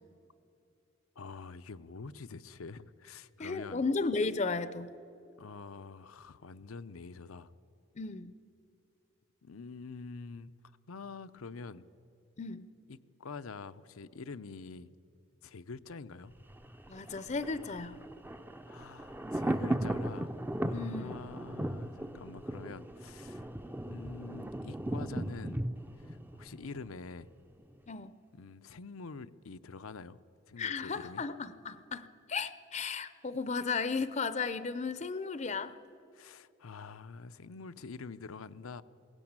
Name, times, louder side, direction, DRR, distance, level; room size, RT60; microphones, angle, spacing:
voice 1, 1.2-3.8 5.4-7.5 9.4-10.5 10.9-11.8 12.9-14.9 15.4-16.3 18.7-20.3 20.6-23.5 23.9-25.6 26.0-27.3 28.3-30.2 30.5-31.3 36.1-38.8, left 4 dB, 85° left, 13 dB, 0.7 m, -46 dB
voice 2, 3.4-4.9 8.0-8.3 12.4-12.7 16.9-18.0 20.7-21.2 27.9-28.1 30.6-35.7, left 4 dB, 35° left, 14 dB, 0.6 m, -34 dB
Thunder, 16.3-27.3 27.6-27.7, right 1 dB, 10° right, 0.5 m, -37 dB
21.5 x 17.5 x 8.8 m, 2.7 s
head